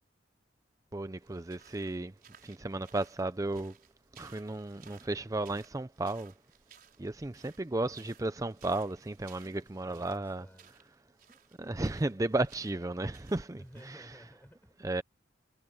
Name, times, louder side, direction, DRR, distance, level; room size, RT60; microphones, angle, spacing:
voice 1, 0.9-2.1 2.4-3.7 4.2-6.3 7.0-10.4 11.6-13.6 14.8-15.0, right 2 dB, 20° right, 0.5 m, -34 dB
sound 1, 1.2-14.0, right 8 dB, 50° right, 6.0 m, -60 dB
voice 2, 7.8-8.1 9.7-10.7 13.5-15.0, equal, 10° left, 5.7 m, -55 dB
head